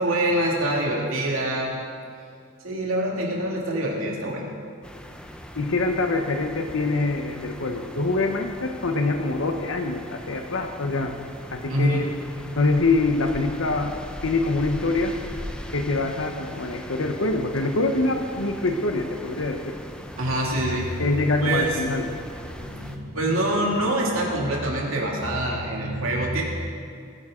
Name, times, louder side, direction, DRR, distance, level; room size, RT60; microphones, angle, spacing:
voice 1, 0.0-1.7 2.6-4.5 11.7-12.1 20.2-21.0 21.4-21.7 22.5-26.4, right 1 dB, 85° right, -2 dB, 2.4 m, -25 dB
sound 1, 4.8-23.0, equal, 5° left, 0.7 m, -40 dB
voice 2, 5.5-11.1 11.5-12.1 12.6-13.9 14.2-15.1 15.7-19.8 21.0-22.1, left 2 dB, 75° left, 4 dB, 1.0 m, -24 dB
20.5 x 11.0 x 3.8 m, 2.3 s
head